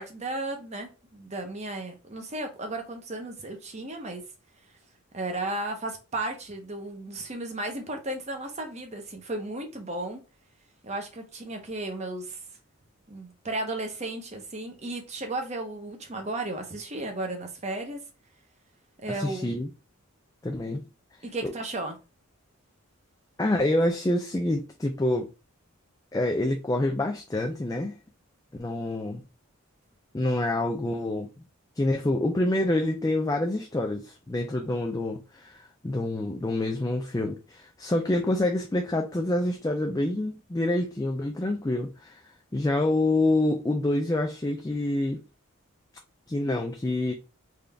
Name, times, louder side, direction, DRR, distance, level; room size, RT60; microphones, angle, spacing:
voice 1, 0.0-4.2 5.1-10.2 10.8-12.4 13.1-18.0 19.0-19.5 21.2-22.0, right 2 dB, 30° right, 0.8 m, -34 dB
voice 2, 19.2-19.7 20.4-20.8 21.4-21.5 23.4-25.3 26.1-28.0 28.6-29.2 30.1-31.3 31.8-42.2 42.5-45.2 46.3-47.1, left 1 dB, 15° left, 0.4 m, -27 dB
3.8 x 2.6 x 3.3 m
head